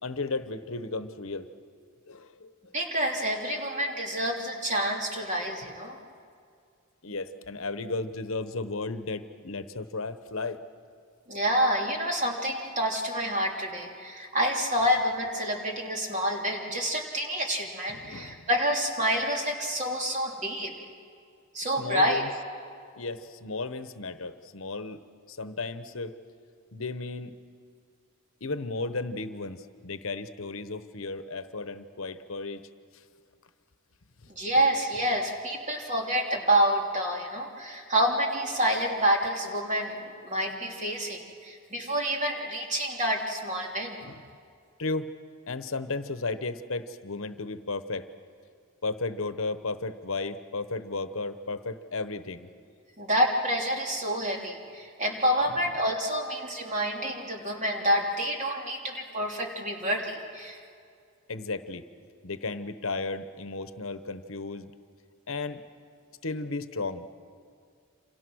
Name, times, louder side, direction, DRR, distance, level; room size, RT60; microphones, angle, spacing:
voice 1, 0.0-1.5 2.1-2.5 7.0-10.6 17.9-18.4 21.8-22.3 23.0-26.2 26.7-27.3 28.4-32.7 34.2-34.3 44.0-44.2 44.8-45.1 45.5-48.1 48.8-52.5 61.3-61.8 62.2-64.7 65.3-65.6 66.2-67.0, left 3 dB, 65° left, 11 dB, 1.0 m, -34 dB
voice 2, 2.7-6.0 11.3-20.7 21.5-22.2 34.3-40.0 40.2-44.0 53.0-60.6, equal, 35° right, 0 dB, 3.1 m, -28 dB
28.5 x 27.0 x 6.3 m, 2.2 s
head